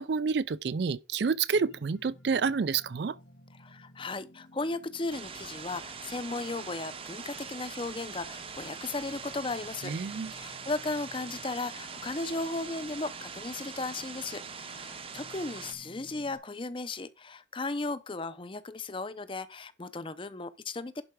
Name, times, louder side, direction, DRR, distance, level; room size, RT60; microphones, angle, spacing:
voice 1, 0.0-3.2 9.8-10.3, right 5 dB, 60° right, 0.4 m, -29 dB
sound 1, 1.5-16.4, equal, 90° left, 1.9 m, -55 dB
voice 2, 3.6-9.9 10.3-21.0, left 3 dB, 25° left, 0.6 m, -36 dB
sound 2, 5.1-15.7, right 6 dB, 30° right, 0.7 m, -43 dB
11.0 x 4.6 x 4.8 m
head